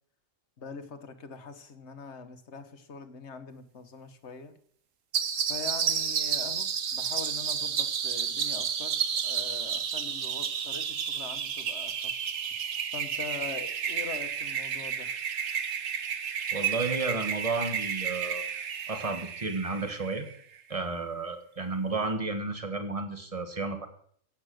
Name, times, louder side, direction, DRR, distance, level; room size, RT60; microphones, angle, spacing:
voice 1, 0.6-4.6 5.5-12.2 12.9-15.1, left 5 dB, 60° left, 9 dB, 1.5 m, -43 dB
sound 1, 5.1-20.4, right 7 dB, 80° right, 1.4 m, -31 dB
voice 2, 16.5-18.4 18.9-20.2 20.7-23.9, right 3 dB, 25° right, 6 dB, 1.6 m, -32 dB
15.5 x 8.8 x 6.3 m, 0.62 s
omnidirectional pair, 1.3 m